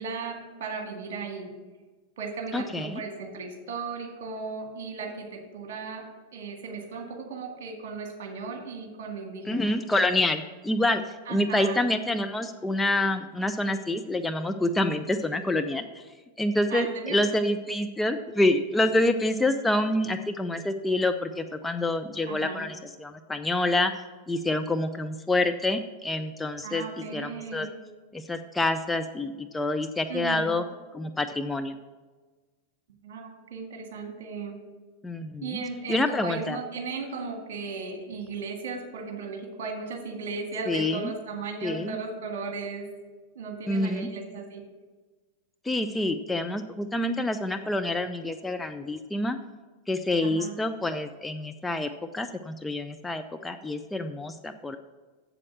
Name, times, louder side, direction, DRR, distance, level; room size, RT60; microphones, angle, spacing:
voice 1, 0.0-1.5 2.2-6.1 6.3-9.7 11.3-11.9 16.7-17.2 22.3-22.6 26.6-27.7 30.1-30.5 33.0-34.6 35.4-42.9 43.4-44.6 50.2-50.6, right 4 dB, 55° right, 3 dB, 2.0 m, -36 dB
voice 2, 2.5-3.0 9.5-16.0 16.4-23.9 24.3-26.8 27.1-27.7 28.1-30.6 30.9-31.8 35.0-35.6 35.9-36.6 40.7-41.1 41.6-42.0 43.7-44.1 45.6-49.4 49.9-54.8, left 1 dB, 10° left, 7 dB, 0.5 m, -27 dB
7.7 x 7.5 x 7.5 m, 1.3 s
figure-of-eight pair, 90°, 0 cm